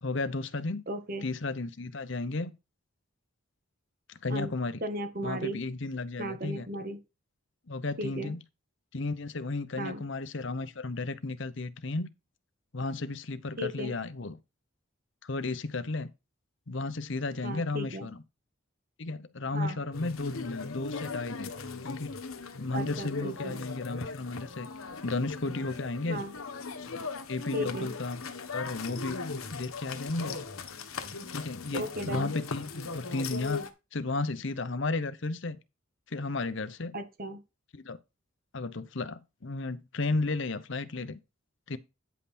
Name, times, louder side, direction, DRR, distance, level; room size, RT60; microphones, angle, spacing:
voice 1, 0.0-0.8 1.2-2.5 4.1-4.8 5.2-6.7 7.7-8.4 8.9-12.1 12.7-14.4 15.2-16.1 16.7-18.2 19.0-21.5 21.8-22.1 22.6-24.7 25.0-26.2 26.9-28.2 28.5-29.2 29.5-30.4 31.3-33.6 33.9-35.6 36.1-37.0 37.7-38.0 38.5-41.2 41.7-41.8, left 3 dB, 60° left, 0.8 m, -33 dB
voice 2, 0.9-1.2 4.3-4.5 4.8-5.6 6.2-7.0 8.0-8.3 9.8-10.0 13.6-14.0 17.4-18.1 19.5-19.8 22.7-23.6 26.1-26.3 27.5-27.9 31.7-32.3 36.9-37.4, right 1 dB, 45° right, 1.5 m, -35 dB
sound 1, 19.9-33.7, left 4 dB, 80° left, 1.4 m, -39 dB
9.7 x 5.6 x 4.3 m
head